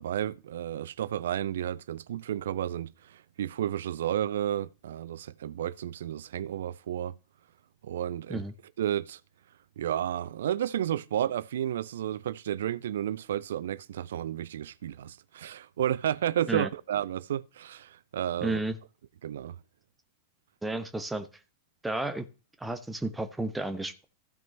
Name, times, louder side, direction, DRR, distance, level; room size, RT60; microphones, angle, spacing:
voice 1, 0.0-7.1 7.8-8.4 8.8-9.2 9.8-18.6 19.2-19.6, right 11 dB, 60° right, 0.4 m, -32 dB
voice 2, 18.4-18.8 20.6-21.3 21.8-22.2 22.6-24.0, right 2 dB, 5° right, 1.0 m, -32 dB
15.0 x 6.0 x 3.2 m
figure-of-eight pair, 90°, 0 cm